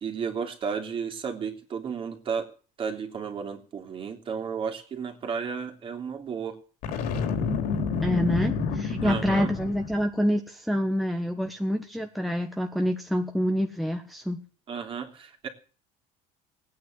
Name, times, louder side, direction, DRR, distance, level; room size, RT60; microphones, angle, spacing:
voice 1, 0.0-2.5 2.8-6.6 9.0-9.5 14.7-15.5, right 6 dB, 35° right, 4 dB, 3.2 m, -33 dB
Boom, 6.8-10.0, left 5 dB, 70° left, 3.7 m, -29 dB
voice 2, 8.0-14.4, equal, ahead, 4 dB, 1.4 m, -27 dB
18.0 x 9.5 x 7.9 m, 0.41 s
cardioid pair, 125°, 15 cm